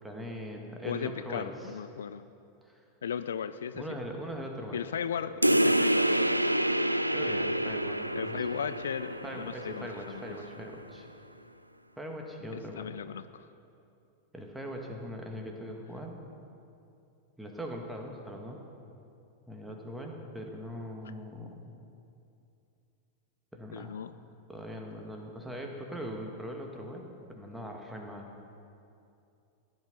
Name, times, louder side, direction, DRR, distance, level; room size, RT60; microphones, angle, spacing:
voice 1, 0.0-1.5 2.6-2.9 3.7-4.8 7.1-8.6 9.2-11.1 12.0-12.9 14.3-16.2 17.4-18.6 19.5-21.7 23.5-23.9 24.5-28.3, equal, 5° right, 1 dB, 1.9 m, -41 dB
voice 2, 0.8-2.2 3.0-3.9 4.7-6.5 8.2-10.4 12.5-13.5 19.7-19.8 21.0-21.1 23.7-24.1, left 8 dB, 65° left, 13 dB, 0.4 m, -37 dB
sound 1, 5.4-10.5, right 1 dB, 85° right, 0.3 m, -28 dB
15.5 x 11.0 x 5.3 m, 2.6 s
figure-of-eight pair, 90°, 0 cm